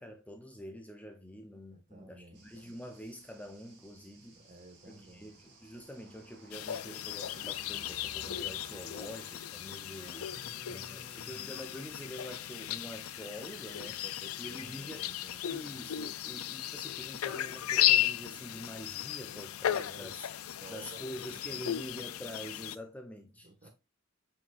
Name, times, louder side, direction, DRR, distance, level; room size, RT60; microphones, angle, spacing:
voice 1, 0.0-4.4 4.8-14.0 14.4-15.1 15.5-20.3 20.7-23.7, equal, 5° left, 0.7 m, -46 dB
voice 2, 1.7-2.5 4.1-5.4 10.3-11.6 13.8-15.5 19.8-20.2 20.6-21.8 23.4-23.7, right 1 dB, 35° right, 1.7 m, -54 dB
sound 1, 2.3-17.1, right 2 dB, 55° right, 2.5 m, -58 dB
sound 2, 6.5-22.8, left 12 dB, 80° left, 0.4 m, -35 dB
7.6 x 5.7 x 2.5 m
head